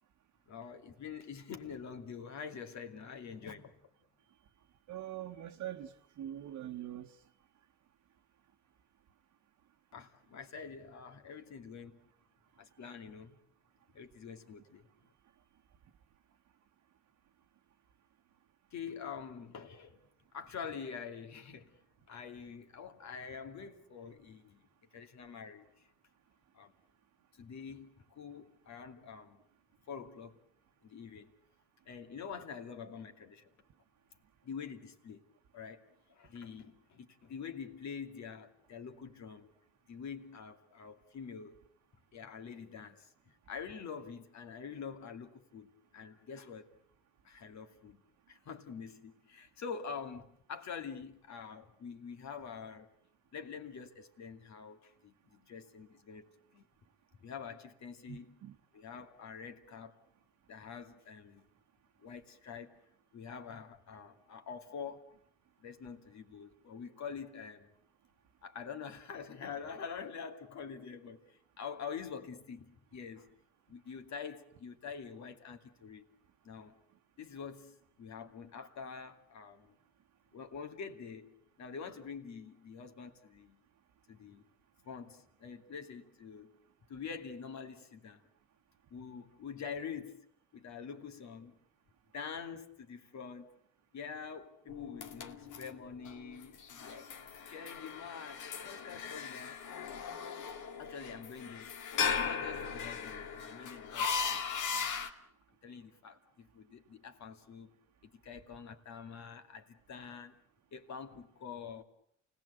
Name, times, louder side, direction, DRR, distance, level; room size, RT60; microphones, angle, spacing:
voice 1, 0.5-3.7 9.9-12.0 12.6-13.4 13.9-14.9 18.7-20.0 20.3-21.8 22.1-24.6 24.9-25.9 26.5-26.7 27.3-29.4 29.9-30.4 30.8-31.3 31.9-33.5 34.4-35.2 35.5-35.8 36.1-39.5 39.9-41.6 42.1-46.7 47.2-48.0 48.3-52.9 53.3-56.7 57.2-58.4 58.7-59.9 60.5-61.5 62.0-62.8 63.1-65.1 65.6-67.7 68.4-73.3 73.7-76.0 76.4-76.8 77.2-79.8 80.3-83.6 84.1-84.4 84.8-86.5 86.9-88.2 88.9-90.3 90.5-91.6 92.1-93.5 93.9-97.1 97.5-99.6 99.9-100.1 100.8-104.4 104.7-105.0 105.6-107.7 108.0-110.4 110.7-111.8, left 6 dB, 65° left, 2.6 m, -46 dB
voice 2, 4.9-5.9 6.2-7.1 58.1-58.5, right 12 dB, 75° right, 1.3 m, -43 dB
sound 1, 94.7-105.1, left 6 dB, 80° left, 2.2 m, -38 dB
29.0 x 18.5 x 8.2 m
cardioid pair, 90°, 30 cm